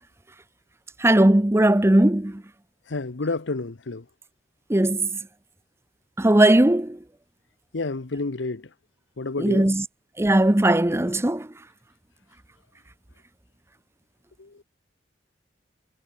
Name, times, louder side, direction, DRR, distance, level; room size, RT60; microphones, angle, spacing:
voice 1, 1.0-2.4 4.7-5.1 6.2-7.0 9.4-9.8 10.2-11.5, right 1 dB, 15° right, 0.7 m, -18 dB
voice 2, 2.9-4.0 7.7-8.7 9.2-9.7 14.4-14.6, left 3 dB, 90° left, 1.0 m, -30 dB
head